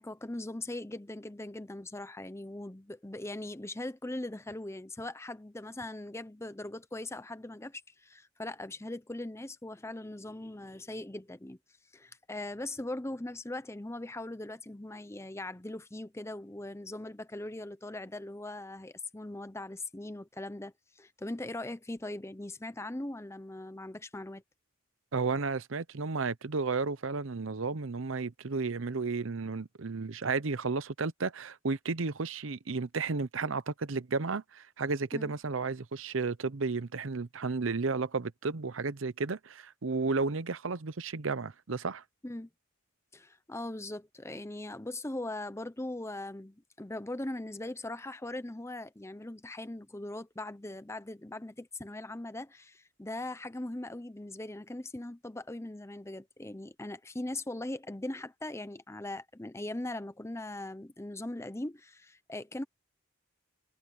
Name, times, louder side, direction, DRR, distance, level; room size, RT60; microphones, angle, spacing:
voice 1, 0.0-11.6 11.9-24.4 35.1-35.3 42.2-42.5 43.1-62.6, left 1 dB, 15° left, 0.7 m, -40 dB
voice 2, 25.1-42.0, right 4 dB, 75° right, 0.8 m, -33 dB
head